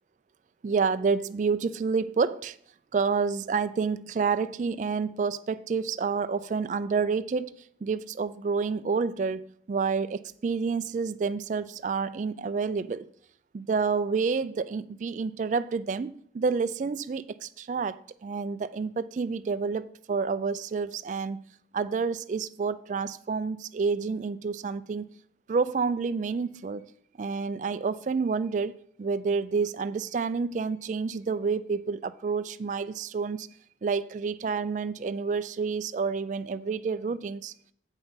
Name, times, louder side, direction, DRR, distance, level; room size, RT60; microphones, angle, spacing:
voice 1, 0.6-2.6 2.9-13.1 13.5-21.5 21.7-25.1 25.5-26.8 27.2-33.5 33.8-37.5, right 5 dB, 45° right, 0.3 m, -29 dB
8.1 x 5.6 x 5.6 m
head